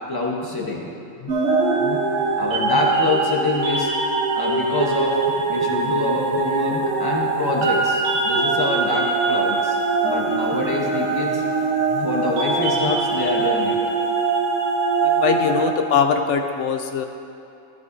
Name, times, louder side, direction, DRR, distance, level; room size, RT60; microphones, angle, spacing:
voice 1, 0.1-1.4 1.7-2.0 2.4-3.9 4.4-5.2 5.5-11.5 11.8-13.8, left 2 dB, 20° left, -1 dB, 0.9 m, -26 dB
sound 1, 1.3-15.7, right 4 dB, 70° right, 1.4 m, -22 dB
voice 2, 15.0-17.0, left 7 dB, 70° left, 6 dB, 0.8 m, -21 dB
14.0 x 7.8 x 2.7 m, 2.7 s
omnidirectional pair, 1.4 m